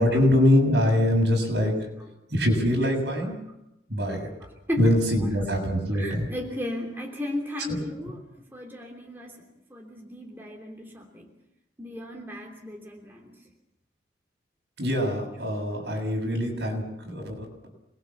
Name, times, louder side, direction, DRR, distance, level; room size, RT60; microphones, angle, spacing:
voice 1, 0.0-1.7 2.3-3.3 3.9-4.2 4.8-6.2 14.8-17.3, left 1 dB, 65° right, 1 dB, 7.3 m, -23 dB
voice 2, 2.8-3.6 4.4-5.4 5.9-8.2 8.5-9.4 9.7-11.3 11.8-13.4, left 1 dB, 10° right, 0 dB, 3.1 m, -35 dB
28.0 x 20.5 x 7.2 m, 0.83 s
head